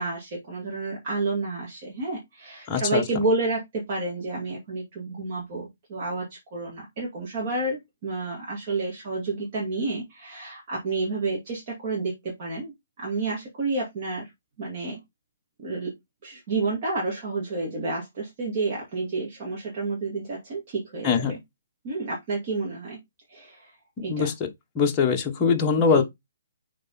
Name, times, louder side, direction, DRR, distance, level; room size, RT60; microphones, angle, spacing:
voice 1, 0.0-6.3 6.5-14.3 14.6-15.0 15.6-15.9 16.2-21.3 21.8-23.0 23.3-23.7 24.0-24.3 25.9-26.0, right 3 dB, 35° right, 2.4 m, -30 dB
voice 2, 2.7-3.0 21.0-21.3 24.0-24.5 24.7-26.0, left 5 dB, 15° left, 1.1 m, -22 dB
6.4 x 4.2 x 4.1 m
hypercardioid pair, 165°, 0 cm